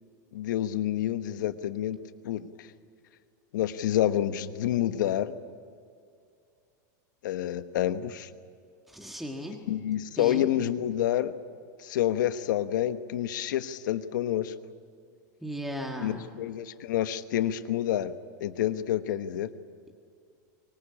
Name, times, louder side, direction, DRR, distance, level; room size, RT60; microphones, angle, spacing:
voice 1, 0.3-2.0 2.2-2.7 3.5-5.4 7.2-8.3 9.7-11.3 11.8-14.5 16.0-18.1 18.4-19.5, left 12 dB, 80° left, 11 dB, 1.2 m, -28 dB
voice 2, 8.9-9.6 10.1-10.5 15.4-16.2, equal, ahead, 1 dB, 1.7 m, -36 dB
24.0 x 20.0 x 8.8 m, 2.3 s
supercardioid pair, 140°, 10 cm